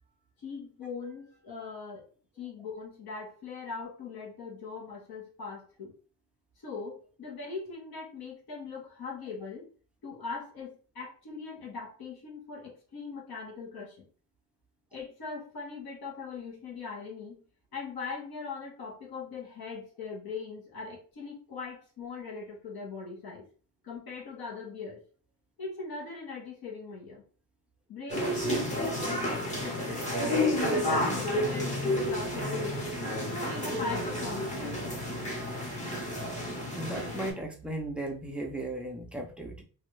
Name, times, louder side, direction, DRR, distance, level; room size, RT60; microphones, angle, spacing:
voice 1, 0.4-2.1 2.4-5.9 6.6-9.6 10.0-14.1 14.9-17.4 17.7-23.5 23.8-25.0 25.6-27.2 27.9-32.8 33.2-35.2, left 4 dB, 60° left, -2 dB, 1.3 m, -40 dB
sound 1, 28.1-37.3, left 1 dB, 15° left, 0.9 m, -31 dB
voice 2, 36.7-39.6, right 1 dB, 5° right, 0 dB, 0.4 m, -36 dB
3.0 x 2.5 x 3.1 m, 0.40 s
wide cardioid pair, 175°, 41 cm